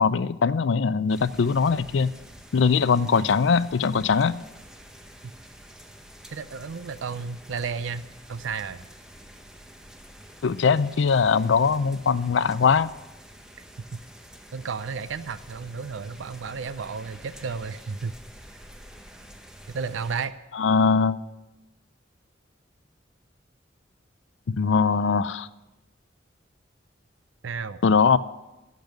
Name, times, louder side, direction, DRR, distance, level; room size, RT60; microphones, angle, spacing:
voice 1, 0.0-2.1 2.5-4.4 10.4-12.9 20.6-21.2 24.5-25.5 27.8-28.2, left 5 dB, 70° left, 16 dB, 0.4 m, -21 dB
sound 1, 1.1-20.3, equal, 5° right, 0.8 m, -48 dB
voice 2, 6.3-8.9 13.9-14.0 14.5-18.1 19.7-20.3 27.4-27.8, right 5 dB, 80° right, 14 dB, 0.5 m, -33 dB
13.5 x 5.3 x 9.1 m, 1.0 s
head